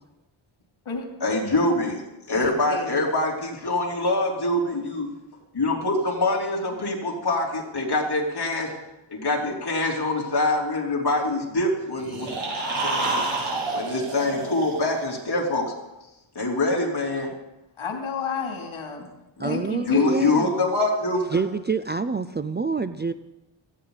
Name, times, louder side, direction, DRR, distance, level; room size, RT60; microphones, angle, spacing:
voice 1, 1.2-5.1 5.5-8.7 9.1-12.3 12.8-15.7 16.4-17.3 19.4-19.6 19.8-21.4, left 2 dB, 50° left, -2 dB, 3.6 m, -25 dB
voice 2, 2.3-3.0 17.8-19.1 19.4-20.3, left 4 dB, 75° left, 1 dB, 2.9 m, -31 dB
sound 1, 12.0-15.1, right 2 dB, 90° right, 5.8 m, -28 dB
voice 3, 19.4-20.5 21.3-23.1, right 4 dB, 25° right, 11 dB, 0.4 m, -26 dB
17.5 x 14.5 x 4.1 m, 0.97 s
wide cardioid pair, 120°, 48 cm